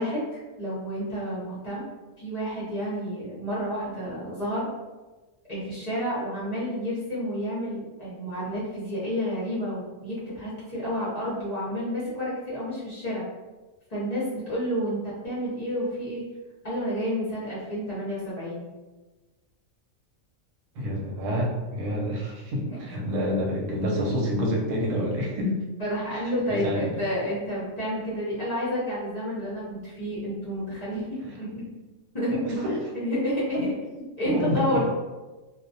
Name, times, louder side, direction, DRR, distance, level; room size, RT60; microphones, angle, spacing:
voice 1, 0.0-1.8 2.2-4.7 5.5-13.2 13.9-16.2 16.6-18.7 22.7-22.8 25.8-31.6 32.1-33.7 34.2-34.8, equal, 40° left, -10 dB, 0.6 m, -30 dB
voice 2, 20.8-25.5 26.5-27.0 32.4-32.8 33.5-33.6 34.2-34.8, equal, 90° right, -1 dB, 1.0 m, -28 dB
2.3 x 2.1 x 2.6 m, 1.2 s
omnidirectional pair, 1.4 m